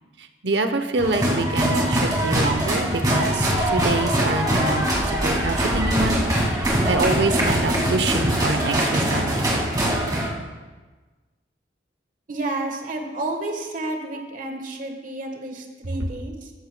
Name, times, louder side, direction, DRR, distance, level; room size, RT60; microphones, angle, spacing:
voice 1, 0.2-6.2 6.5-9.6, right 3 dB, 75° right, 8 dB, 0.8 m, -26 dB
sound 1, 1.0-10.3, right 1 dB, 20° right, 2.1 m, -22 dB
voice 2, 12.3-16.5, right 2 dB, 50° right, 3 dB, 1.3 m, -30 dB
14.0 x 13.0 x 2.2 m, 1.3 s
head